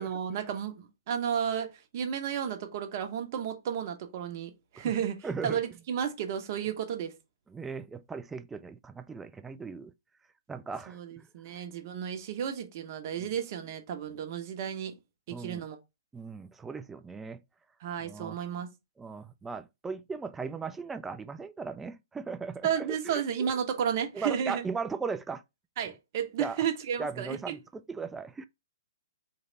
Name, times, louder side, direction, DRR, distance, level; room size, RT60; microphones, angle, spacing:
voice 1, 0.0-5.2 5.4-7.1 10.9-14.9 15.3-15.8 17.8-18.7 22.6-24.6 25.8-27.6, right 8 dB, 45° right, 1.1 m, -32 dB
voice 2, 5.2-5.6 7.5-9.9 10.5-11.3 13.2-13.3 15.3-15.6 16.1-17.4 18.0-18.4 19.0-23.2 24.1-25.4 26.4-26.6 27.0-28.4, right 5 dB, 10° right, 0.3 m, -38 dB
4.0 x 3.3 x 4.0 m
hypercardioid pair, 135°, 2 cm